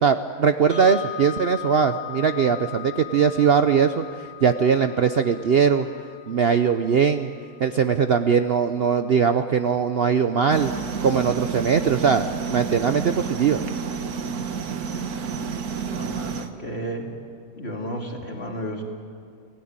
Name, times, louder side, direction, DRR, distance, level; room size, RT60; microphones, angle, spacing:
voice 1, 0.0-5.9 6.3-7.3 7.6-10.7 11.0-13.6, right 6 dB, 50° right, 8 dB, 0.8 m, -20 dB
sound 1, 0.7-8.7, left 12 dB, 80° left, 3.2 m, -40 dB
sound 2, 10.5-16.5, right 6 dB, 90° right, 1.7 m, -30 dB
voice 2, 15.9-17.1 17.6-18.8, equal, 45° left, 1 dB, 3.0 m, -32 dB
27.5 x 17.0 x 8.9 m, 2.3 s
omnidirectional pair, 1.6 m